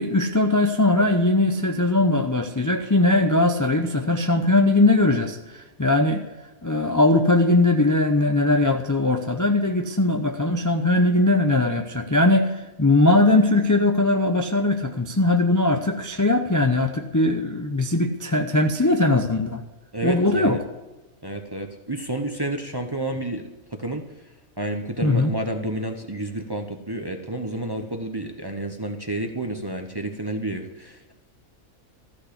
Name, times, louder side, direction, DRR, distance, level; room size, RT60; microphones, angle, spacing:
voice 1, 0.0-6.2 6.6-19.6 20.0-20.6 25.0-25.3, left 2 dB, 20° left, 4 dB, 0.6 m, -20 dB
voice 2, 19.9-20.6 21.2-24.0 24.6-31.1, right 1 dB, 20° right, 4 dB, 0.8 m, -30 dB
14.0 x 6.4 x 8.2 m, 1.1 s
omnidirectional pair, 1.5 m